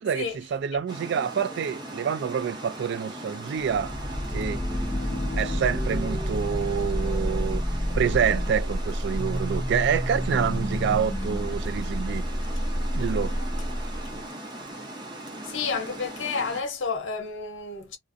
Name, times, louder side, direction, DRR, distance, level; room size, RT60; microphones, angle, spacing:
voice 1, 0.0-3.9 4.3-4.6 5.3-7.6 8.0-12.2 12.9-13.4, right 7 dB, 65° right, 0.3 m, -27 dB
Water, 0.9-16.6, right 1 dB, 25° right, 0.7 m, -39 dB
sound 1, 3.6-14.2, equal, 10° left, 0.4 m, -29 dB
voice 2, 15.4-18.0, left 5 dB, 70° left, 0.7 m, -30 dB
2.5 x 2.0 x 2.4 m
head